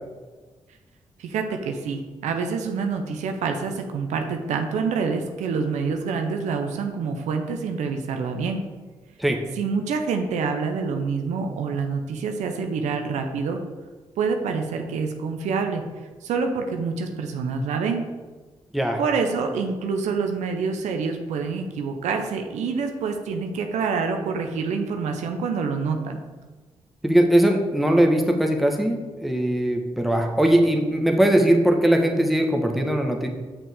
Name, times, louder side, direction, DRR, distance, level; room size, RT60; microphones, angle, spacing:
voice 1, 1.2-8.6 9.6-13.6 14.2-15.8 16.2-18.0 19.0-26.2, right 5 dB, 80° right, 5 dB, 0.7 m, -26 dB
voice 2, 27.0-33.3, right 1 dB, ahead, 2 dB, 1.2 m, -20 dB
6.7 x 6.0 x 3.6 m, 1.3 s
supercardioid pair, 40°, 12 cm